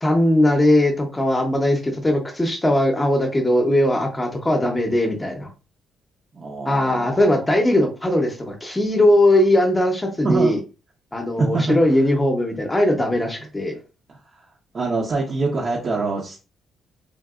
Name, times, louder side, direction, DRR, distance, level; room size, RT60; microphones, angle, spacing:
voice 1, 0.0-5.5 6.6-10.6 11.1-13.8, left 1 dB, 20° left, 2 dB, 0.8 m, -19 dB
voice 2, 6.3-7.5 10.2-10.6 11.4-11.8 14.1-14.4 14.7-16.4, right 3 dB, 45° right, -3 dB, 0.8 m, -25 dB
3.5 x 2.5 x 2.5 m, 0.32 s
cardioid pair, 90°, 0 cm